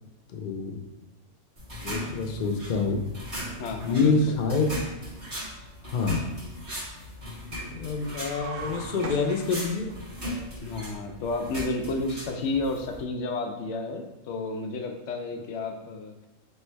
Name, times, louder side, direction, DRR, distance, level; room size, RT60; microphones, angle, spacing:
voice 1, 0.3-0.9 1.8-3.0 3.8-4.7 5.9-6.2 7.5-9.9, left 4 dB, 90° left, 3 dB, 0.4 m, -26 dB
sound 1, 1.6-13.0, equal, 40° right, 1.7 m, -38 dB
voice 2, 3.6-4.4 10.6-16.1, left 3 dB, 65° left, 4 dB, 0.8 m, -31 dB
sound 2, 8.0-10.0, right 4 dB, 60° right, 0.5 m, -39 dB
3.3 x 3.0 x 4.4 m, 1.1 s
omnidirectional pair, 1.5 m